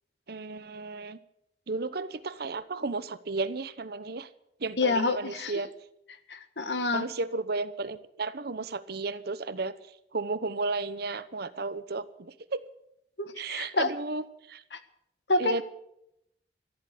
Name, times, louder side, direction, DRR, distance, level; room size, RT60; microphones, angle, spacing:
voice 1, 0.3-1.2 1.7-4.3 4.6-5.7 6.9-9.7 10.1-12.6 13.4-14.6 15.4-15.6, right 3 dB, 65° right, 14 dB, 0.9 m, -33 dB
voice 2, 4.8-5.5 6.3-7.0 13.2-13.9 14.7-14.8 15.3-15.6, left 3 dB, 75° left, 9 dB, 1.5 m, -28 dB
14.5 x 11.0 x 8.4 m, 0.78 s
head